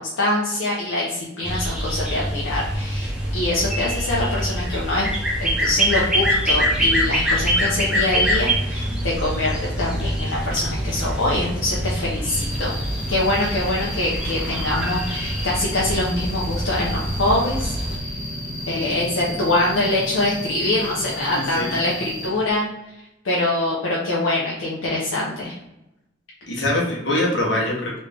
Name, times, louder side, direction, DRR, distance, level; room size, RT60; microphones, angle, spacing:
voice 1, 0.0-5.1 5.4-12.7 13.1-18.2 18.7-22.9 23.2-25.6, left 1 dB, 85° left, -5 dB, 0.7 m, -24 dB
sound 1, 1.4-18.0, equal, 5° right, 0.6 m, -25 dB
sound 2, 6.1-22.5, right 1 dB, 45° right, 0.8 m, -36 dB
Cricket, 12.3-22.3, left 1 dB, 45° left, 1.3 m, -35 dB
voice 2, 21.3-21.7 26.5-28.0, left 1 dB, 70° left, -3 dB, 1.1 m, -23 dB
3.2 x 2.6 x 3.3 m, 0.91 s
head